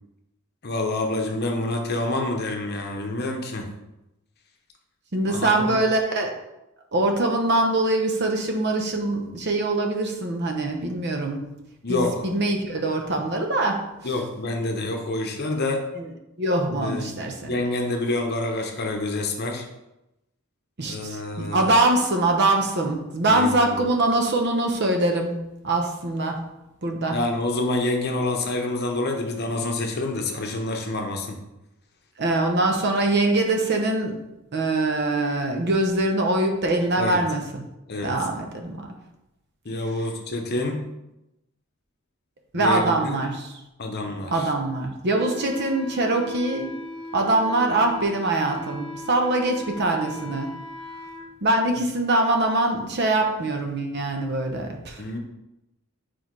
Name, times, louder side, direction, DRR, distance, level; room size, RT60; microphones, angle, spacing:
voice 1, 0.6-3.7 5.3-5.7 11.8-12.3 14.0-15.8 16.7-19.7 20.8-21.7 23.3-23.8 27.1-31.4 37.0-37.2 37.9-38.2 39.6-40.9 42.5-43.2 43.8-44.5 55.0-55.2, left 2 dB, 45° left, 3 dB, 0.8 m, -27 dB
voice 2, 5.1-6.3 6.9-11.4 11.9-13.9 16.4-17.5 20.8-26.4 26.8-27.2 32.2-34.2 34.5-37.6 38.0-38.9 42.5-43.5 44.3-46.7 47.1-50.6 51.4-55.0, right 2 dB, 50° right, 3 dB, 0.8 m, -23 dB
Wind instrument woodwind instrument, 45.0-51.2, left 1 dB, 85° right, 2.0 m, -38 dB
4.7 x 4.4 x 4.6 m, 0.92 s
head